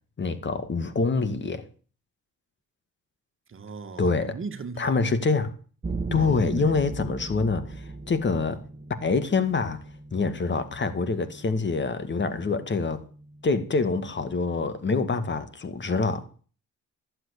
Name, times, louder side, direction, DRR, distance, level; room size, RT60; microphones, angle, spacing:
voice 1, 0.2-1.6 4.0-4.4 4.8-5.5 6.1-8.6 9.0-9.8 10.1-13.0 13.4-16.3, left 4 dB, 40° left, 2.0 m, -26 dB
voice 2, 3.5-4.9 6.1-6.7, right 4 dB, 45° right, 2.0 m, -38 dB
sound 1, 5.8-14.9, right 3 dB, 25° right, 1.9 m, -39 dB
14.5 x 7.8 x 8.3 m
cardioid pair, 90°, 30 cm